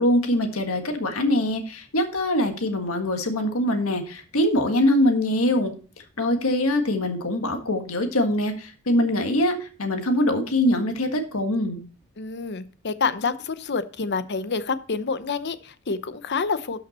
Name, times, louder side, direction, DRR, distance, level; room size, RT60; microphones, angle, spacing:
voice 1, 0.0-5.7 6.2-11.8, left 1 dB, 80° left, 5 dB, 1.6 m, -23 dB
voice 2, 12.2-16.8, left 4 dB, 55° left, 13 dB, 0.8 m, -28 dB
12.5 x 5.8 x 4.2 m, 0.37 s
head